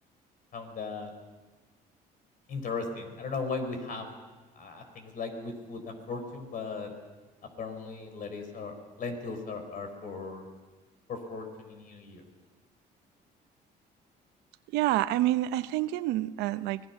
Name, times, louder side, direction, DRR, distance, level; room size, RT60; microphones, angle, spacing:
voice 1, 0.5-1.1 2.5-4.1 4.5-6.9 7.6-10.5 11.1-12.2, left 4 dB, 55° left, 6 dB, 4.4 m, -37 dB
voice 2, 14.7-16.8, right 15 dB, 90° right, 14 dB, 0.7 m, -27 dB
24.5 x 18.5 x 5.8 m, 1.2 s
cardioid pair, 110°, 17 cm